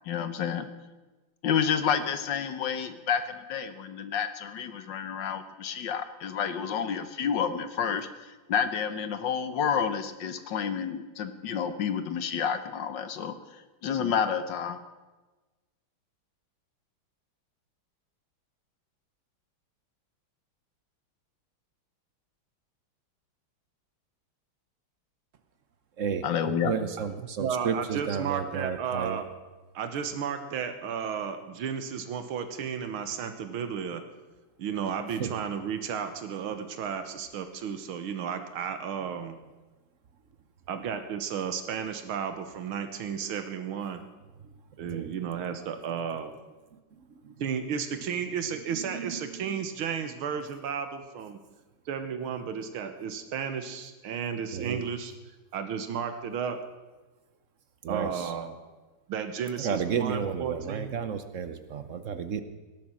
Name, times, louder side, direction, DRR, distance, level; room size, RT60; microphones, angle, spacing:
voice 1, 0.1-0.7 1.4-13.3 13.8-14.8 26.2-26.7, left 7 dB, 65° left, 11 dB, 1.5 m, -29 dB
voice 2, 26.6-29.2 35.2-35.3 44.8-45.1 48.7-49.2 54.5-54.8 57.8-58.3 59.6-62.4, right 7 dB, 60° right, 10 dB, 0.8 m, -32 dB
voice 3, 27.2-29.3 29.8-34.0 34.6-39.4 40.7-44.0 44.8-46.4 47.4-51.4 51.9-55.1 55.5-56.6 57.9-58.6 59.1-61.0, right 7 dB, 80° right, 8 dB, 1.9 m, -33 dB
18.0 x 10.5 x 6.2 m, 1.2 s
omnidirectional pair, 2.3 m